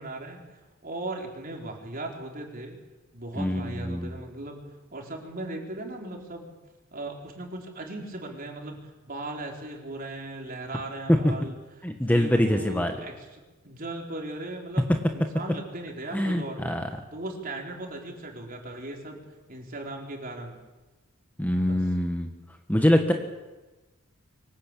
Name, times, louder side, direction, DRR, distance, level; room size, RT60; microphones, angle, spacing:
voice 1, 0.0-2.8 3.1-4.6 4.9-6.5 6.9-11.6 12.0-16.8 17.1-19.2 19.5-20.6 21.6-21.8, right 2 dB, 40° right, 1 dB, 4.5 m, -38 dB
voice 2, 3.4-4.2 11.1-11.3 11.8-13.0 16.1-16.9 21.4-22.3 22.7-23.1, equal, 10° left, 4 dB, 1.4 m, -24 dB
24.5 x 19.0 x 8.5 m, 1.1 s
head